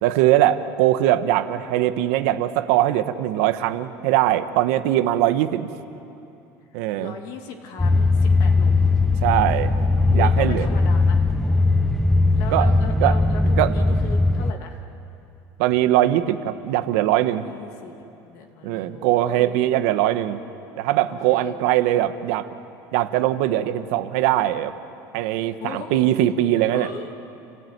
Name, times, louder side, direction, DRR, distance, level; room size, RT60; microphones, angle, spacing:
voice 1, 0.0-5.7 6.7-7.1 9.2-9.7 10.1-10.7 12.5-12.7 13.0-13.7 15.6-17.5 18.6-20.4 20.8-22.5 22.9-24.7 25.1-26.9, right 13 dB, 75° right, 10 dB, 1.2 m, -21 dB
voice 2, 7.0-8.9 10.1-11.2 11.5-11.6 12.3-14.8 17.1-18.0 18.2-19.7 21.1-21.6 25.6-26.1 26.7-27.1, left 6 dB, 55° left, 3 dB, 2.3 m, -38 dB
sound 1, 7.8-14.5, left 3 dB, 5° left, 0.5 m, -19 dB
29.5 x 17.0 x 9.5 m, 2.8 s
cardioid pair, 160°, 8 cm